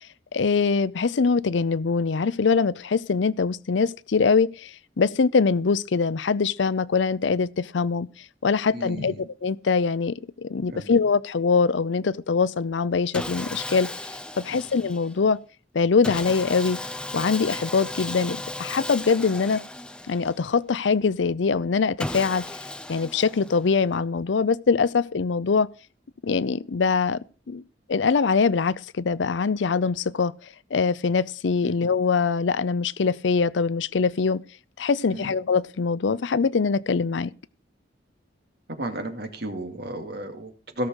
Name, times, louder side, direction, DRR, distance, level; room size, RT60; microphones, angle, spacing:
voice 1, 0.3-8.1 8.4-13.9 14.4-15.4 15.7-16.8 17.1-19.6 20.1-22.4 22.9-25.7 26.2-27.2 27.5-27.6 27.9-30.3 30.7-34.4 34.8-37.3, left 5 dB, 80° left, 0.5 m, -23 dB
voice 2, 8.7-9.2 10.7-10.9 31.6-31.7 35.1-35.3 38.7-40.9, right 1 dB, 60° right, 2.4 m, -33 dB
Sawing, 13.1-15.2 16.0-20.6 22.0-23.8, left 1 dB, 5° left, 0.6 m, -35 dB
17.0 x 6.6 x 6.3 m
head